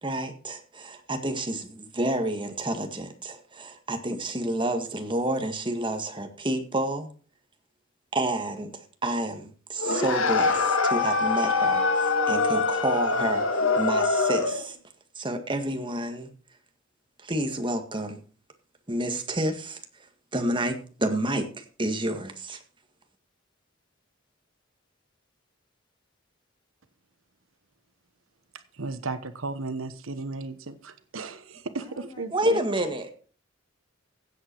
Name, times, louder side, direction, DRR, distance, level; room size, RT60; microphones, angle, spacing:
voice 1, 0.0-7.1 8.1-14.8 15.2-16.3 17.2-18.2 18.9-19.8 20.3-22.6 32.3-33.1, right 1 dB, 25° right, 1.8 m, -29 dB
sound 1, 9.8-14.7, left 3 dB, 80° left, 1.7 m, -24 dB
voice 2, 28.8-32.6, right 3 dB, 90° right, 1.1 m, -35 dB
voice 3, 31.8-32.9, left 1 dB, 20° left, 2.2 m, -47 dB
16.0 x 8.0 x 4.6 m
head